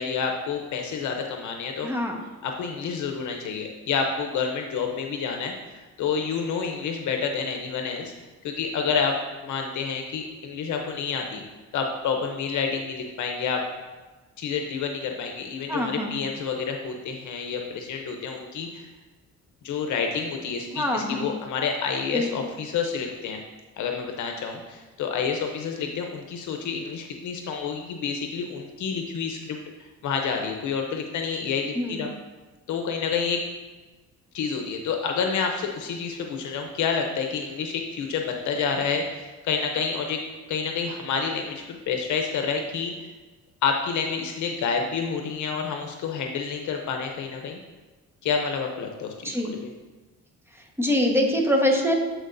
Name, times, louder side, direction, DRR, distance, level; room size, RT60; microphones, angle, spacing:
voice 1, 0.0-1.9 2.4-8.1 8.4-11.4 11.7-13.6 14.4-18.9 19.6-23.4 23.8-29.6 30.0-32.1 32.7-33.4 34.3-40.2 40.5-42.9 43.6-47.6 48.2-49.7, left 6 dB, 75° left, 3 dB, 0.8 m, -29 dB
voice 2, 1.8-2.2 15.7-16.1 20.7-21.3 22.1-22.3 31.7-32.1 49.2-49.5 50.8-52.0, left 1 dB, 10° right, 1 dB, 1.2 m, -24 dB
12.5 x 4.5 x 2.6 m, 1.2 s
cardioid pair, 90°, 30 cm